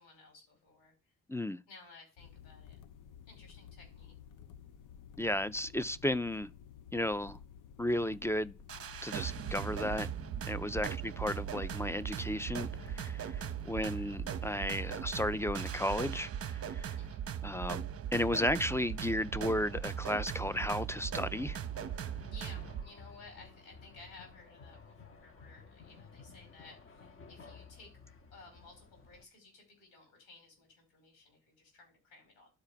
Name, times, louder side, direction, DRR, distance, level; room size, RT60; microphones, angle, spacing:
voice 1, 0.0-1.1 1.7-2.8 3.3-4.1 10.7-11.0 13.8-14.1 17.0-17.2 22.3-28.0 28.3-32.5, left 3 dB, 80° left, 5.2 m, -56 dB
voice 2, 1.3-1.6 5.2-6.5 6.9-7.4 7.8-8.6 9.0-10.1 10.5-17.0 17.4-17.9 18.1-21.6, left 1 dB, 5° left, 0.4 m, -34 dB
sound 1, 2.2-15.9, left 8 dB, 55° left, 0.8 m, -53 dB
sound 2, 8.7-22.8, right 9 dB, 40° right, 0.8 m, -39 dB
sound 3, 18.8-29.2, left 4 dB, 35° left, 1.0 m, -55 dB
11.5 x 4.5 x 5.1 m
hypercardioid pair, 45°, 37 cm